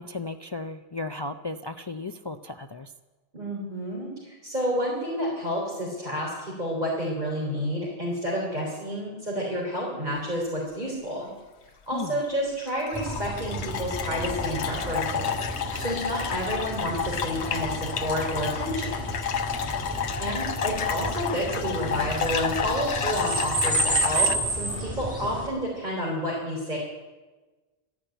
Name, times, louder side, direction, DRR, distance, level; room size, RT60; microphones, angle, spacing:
voice 1, 0.0-2.9 11.9-12.2, left 3 dB, 35° left, 8 dB, 0.4 m, -35 dB
voice 2, 3.3-11.3 11.9-19.1 20.2-26.8, equal, 45° right, -5 dB, 4.0 m, -30 dB
sound 1, 12.0-12.3 12.7-24.4, left 7 dB, 80° left, 1.1 m, -31 dB
sound 2, 12.9-25.5, right 2 dB, 10° right, 5.8 m, -31 dB
13.5 x 10.5 x 9.1 m, 1.2 s
omnidirectional pair, 1.1 m